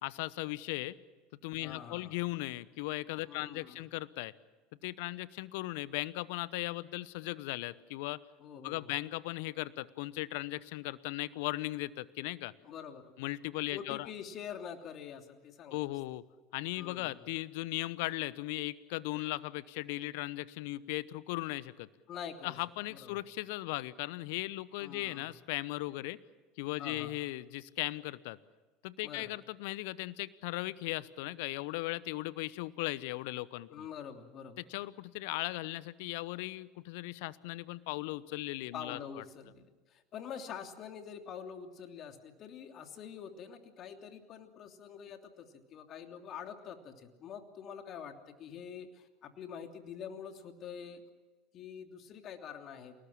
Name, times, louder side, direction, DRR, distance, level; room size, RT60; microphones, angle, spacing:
voice 1, 0.0-0.9 1.4-4.3 4.8-8.2 8.6-12.5 13.2-14.1 15.7-16.2 16.5-21.9 22.4-26.2 26.6-28.4 28.8-33.9 34.6-39.2, left 19 dB, 65° left, 18 dB, 1.0 m, -37 dB
voice 2, 1.6-2.2 3.2-3.8 8.4-8.9 12.6-13.1 13.7-15.8 16.8-17.3 22.1-22.6 22.9-23.2 24.8-25.3 26.8-27.2 29.0-29.3 33.7-34.6 38.7-51.0 51.5-53.0, left 7 dB, 45° left, 5 dB, 3.1 m, -46 dB
29.0 x 19.0 x 7.5 m, 1.3 s
hypercardioid pair, 75°, 0 cm